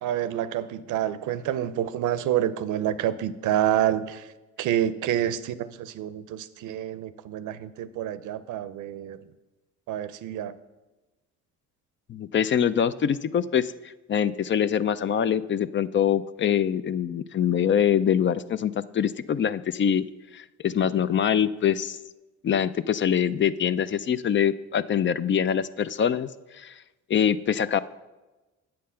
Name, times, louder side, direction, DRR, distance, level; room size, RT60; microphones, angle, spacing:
voice 1, 0.0-4.3 4.6-9.2 9.9-10.6, right 11 dB, 80° right, 14 dB, 0.6 m, -28 dB
voice 2, 12.1-13.7 14.1-20.0 20.3-22.0 22.4-26.7 27.1-27.8, left 8 dB, 40° left, 15 dB, 0.4 m, -24 dB
8.6 x 7.6 x 5.6 m, 1.1 s
cardioid pair, 90°, 30 cm